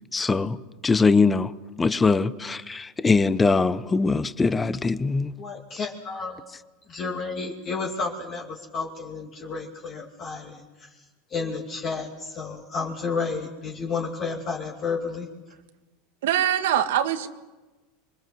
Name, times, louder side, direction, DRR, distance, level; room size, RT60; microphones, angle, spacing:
voice 1, 0.1-0.6 0.8-1.5 1.8-5.3, left 4 dB, 10° left, 0.8 m, -22 dB
voice 2, 5.4-6.4 6.9-11.0 11.3-15.3, left 4 dB, 30° left, 2.6 m, -31 dB
voice 3, 16.2-17.3, right 11 dB, 85° right, 1.9 m, -23 dB
27.0 x 23.5 x 7.8 m
supercardioid pair, 160°, 0 cm